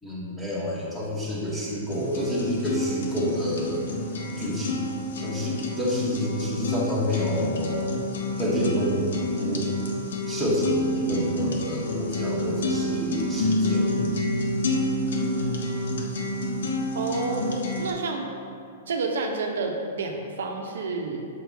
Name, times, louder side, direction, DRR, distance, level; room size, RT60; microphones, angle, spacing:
voice 1, 0.0-3.8 4.4-4.9 5.2-7.9 8.4-9.0 9.4-9.7 10.2-14.2, equal, ahead, -8 dB, 1.0 m, -29 dB
sound 1, 1.9-17.9, left 1 dB, 85° left, 0.9 m, -28 dB
voice 2, 16.9-17.5 17.8-18.3 18.9-21.2, right 3 dB, 90° right, 2 dB, 0.8 m, -29 dB
7.1 x 4.8 x 3.4 m, 2.4 s
hypercardioid pair, 175°, 0 cm